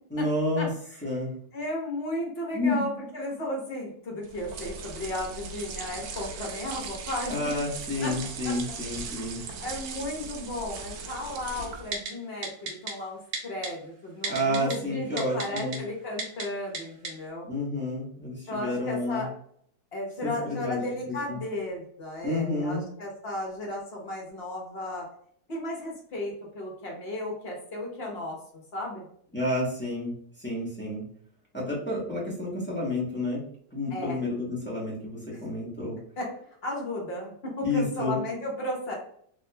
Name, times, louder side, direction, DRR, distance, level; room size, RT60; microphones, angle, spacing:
voice 1, 0.1-0.7 1.0-1.3 2.5-2.8 7.3-9.4 14.3-15.8 17.5-19.3 20.2-21.4 22.2-22.8 29.3-31.0 31.5-33.4 33.7-36.0 37.6-38.2, left 1 dB, 10° left, -7 dB, 0.7 m, -30 dB
voice 2, 1.5-7.3 8.0-8.1 8.4-8.5 9.0-9.1 9.6-17.5 18.5-19.3 19.9-25.1 25.5-28.4 28.7-29.1 33.9-34.2 36.2-36.3 36.6-38.9, left 1 dB, 45° left, -1 dB, 0.9 m, -34 dB
sound 1, 4.2-12.0, right 4 dB, 90° right, 1.3 m, -39 dB
Typing, 11.9-12.1 12.4-12.9 13.3-13.7 14.2-14.7 15.2-15.8 16.2-16.4 16.7-16.8 17.0-17.1, right 4 dB, 60° right, 0.7 m, -32 dB
3.5 x 2.9 x 2.2 m, 0.62 s
omnidirectional pair, 2.0 m